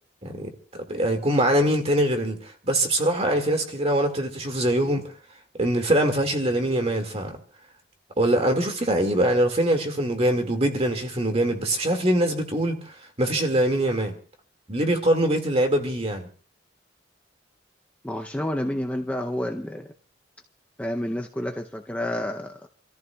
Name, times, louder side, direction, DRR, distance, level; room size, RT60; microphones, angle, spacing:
voice 1, 0.2-5.1 5.6-7.3 8.2-14.1 14.7-16.3, right 1 dB, 35° right, 2.0 m, -23 dB
voice 2, 18.0-19.9 20.8-22.7, left 1 dB, 10° left, 0.6 m, -29 dB
29.5 x 14.0 x 2.3 m
head